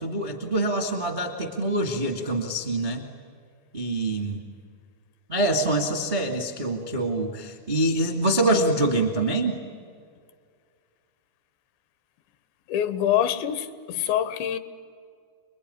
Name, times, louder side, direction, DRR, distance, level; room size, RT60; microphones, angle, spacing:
voice 1, 0.0-3.0 3.7-4.4 5.3-9.6, right 1 dB, 55° right, 0.5 m, -25 dB
voice 2, 12.7-13.7 14.0-14.6, left 10 dB, 85° left, 3.3 m, -24 dB
28.0 x 22.0 x 9.9 m
omnidirectional pair, 5.1 m